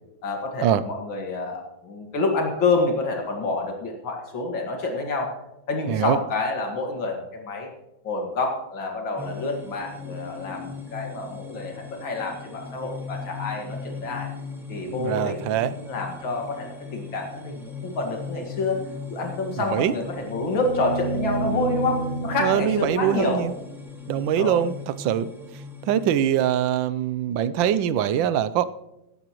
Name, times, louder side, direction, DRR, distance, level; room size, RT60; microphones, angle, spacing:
voice 1, 0.2-5.3 5.7-7.7 8.0-14.3 14.7-18.8 19.1-23.4 24.2-24.6, left 3 dB, 80° left, 2 dB, 2.7 m, -28 dB
sound 1, 9.2-26.5, left 5 dB, ahead, 1.9 m, -38 dB
voice 2, 15.0-15.7 19.6-19.9 22.4-23.5 24.1-25.3 25.8-28.6, right 10 dB, 80° right, 15 dB, 1.4 m, -23 dB
sound 2, 19.7-23.8 26.2-26.3, right 3 dB, 35° right, 0.8 m, -31 dB
17.0 x 12.5 x 3.0 m, 0.91 s
omnidirectional pair, 2.1 m